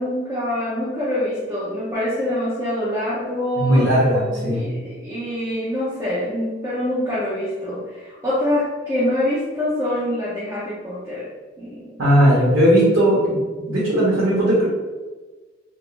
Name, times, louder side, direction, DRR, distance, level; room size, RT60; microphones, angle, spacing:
voice 1, 0.0-11.3 11.6-12.0, left 1 dB, 15° right, -10 dB, 0.5 m, -25 dB
voice 2, 3.6-4.6 12.0-13.4 13.7-14.6, equal, 85° right, -7 dB, 0.8 m, -17 dB
2.3 x 2.0 x 3.0 m, 1.3 s
head